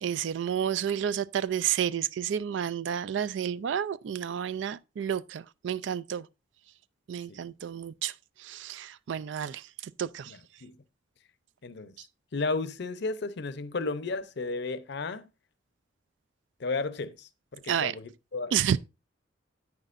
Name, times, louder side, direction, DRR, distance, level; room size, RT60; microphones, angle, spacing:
voice 1, 0.0-6.3 7.1-8.1 8.4-10.3 17.7-17.9 18.5-18.8, right 9 dB, 65° right, 0.3 m, -30 dB
voice 2, 10.3-10.8 11.6-11.9 12.3-15.3 16.6-18.8, left 3 dB, 60° left, 0.7 m, -34 dB
9.5 x 9.0 x 2.5 m
head